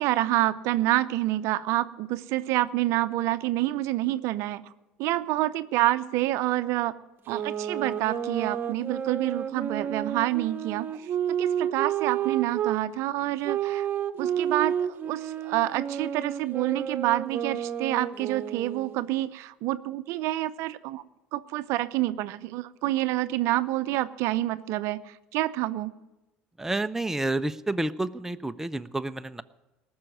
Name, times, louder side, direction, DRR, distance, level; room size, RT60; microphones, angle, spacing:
voice 1, 0.0-4.6 5.0-7.0 7.3-11.1 11.4-13.9 14.2-21.0 21.3-26.0, right 16 dB, 65° right, 14 dB, 0.6 m, -28 dB
sound 1, 7.3-12.8 13.4-19.0, right 9 dB, 40° right, 1.0 m, -31 dB
voice 2, 26.6-29.4, right 2 dB, 10° right, 10 dB, 0.6 m, -29 dB
19.0 x 6.3 x 9.2 m, 1.0 s
hypercardioid pair, 70°, 5 cm